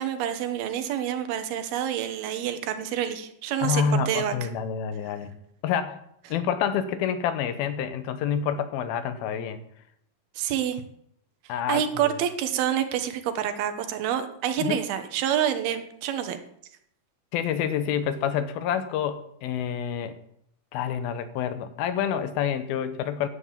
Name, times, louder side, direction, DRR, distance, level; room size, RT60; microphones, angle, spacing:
voice 1, 0.0-4.3 10.4-10.8 11.7-16.4, right 10 dB, 80° right, 9 dB, 3.0 m, -27 dB
voice 2, 3.6-5.4 5.6-6.0 6.3-9.6 11.5-12.1 14.6-14.8 17.3-20.2 20.7-23.3, left 8 dB, 75° left, 11 dB, 2.8 m, -28 dB
10.5 x 9.1 x 7.4 m, 0.72 s
omnidirectional pair, 4.4 m